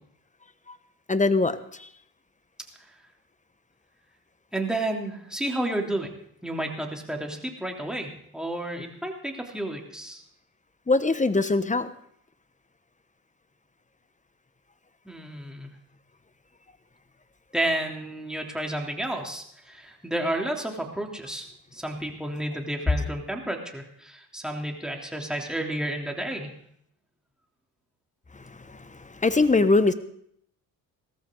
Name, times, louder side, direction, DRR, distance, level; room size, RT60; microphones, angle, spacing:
voice 1, 1.1-1.9 10.9-11.9 28.3-29.9, left 3 dB, 15° left, 13 dB, 1.1 m, -23 dB
voice 2, 4.5-6.1 6.4-10.2 15.0-15.7 17.5-26.5, right 1 dB, ahead, 1 dB, 3.3 m, -31 dB
17.5 x 14.5 x 3.9 m, 0.68 s
hypercardioid pair, 60°, 48 cm